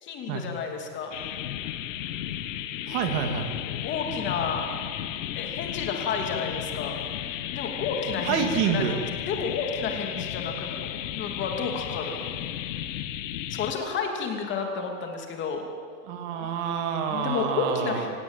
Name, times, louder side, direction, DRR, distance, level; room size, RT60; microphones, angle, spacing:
voice 1, 0.0-1.1 3.7-4.8 5.4-9.0 9.3-12.2 13.5-15.7 17.1-18.1, left 5 dB, 25° left, 3 dB, 2.8 m, -31 dB
sound 1, 1.1-13.7, left 11 dB, 50° left, 1.5 m, -34 dB
voice 2, 2.9-3.5 8.2-8.9 16.0-18.1, right 7 dB, 40° right, 5 dB, 2.7 m, -27 dB
25.0 x 18.5 x 9.0 m, 2.2 s
supercardioid pair, 160°, 47 cm